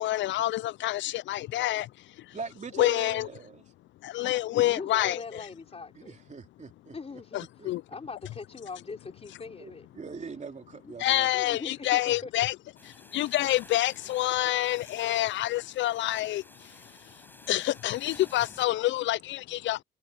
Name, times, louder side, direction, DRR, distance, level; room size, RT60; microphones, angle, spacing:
voice 1, 0.0-1.9 2.2-2.4 2.8-3.3 4.0-5.2 7.3-7.8 11.0-12.5 12.8-16.7 17.5-19.8, left 15 dB, 70° left, 0.4 m, -27 dB
voice 2, 2.3-3.6 6.0-6.9 7.4-7.7 9.6-11.3, right 5 dB, 35° right, 3.4 m, -41 dB
voice 3, 4.4-6.1 6.9-7.4 7.9-9.9 10.7-10.9 11.3-12.3, left 4 dB, 30° left, 4.3 m, -41 dB
sound 1, 12.8-18.7, left 1 dB, 10° left, 6.0 m, -53 dB
cardioid pair, 90°, 20 cm